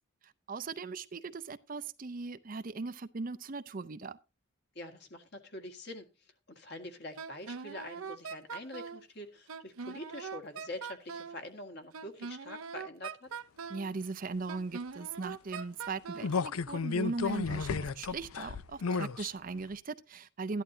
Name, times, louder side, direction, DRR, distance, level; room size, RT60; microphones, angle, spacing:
voice 1, 0.2-4.2 13.7-20.6, right 4 dB, 40° right, 0.5 m, -39 dB
voice 2, 4.8-13.3, left 1 dB, 50° left, 1.8 m, -45 dB
Wind instrument woodwind instrument, 7.2-9.0 9.5-11.4 11.9-13.9 14.5-16.3, right 6 dB, 85° right, 0.7 m, -42 dB
sound 1, 16.2-19.3 19.7-19.8, left 5 dB, 90° left, 0.5 m, -33 dB
13.5 x 11.0 x 2.8 m
head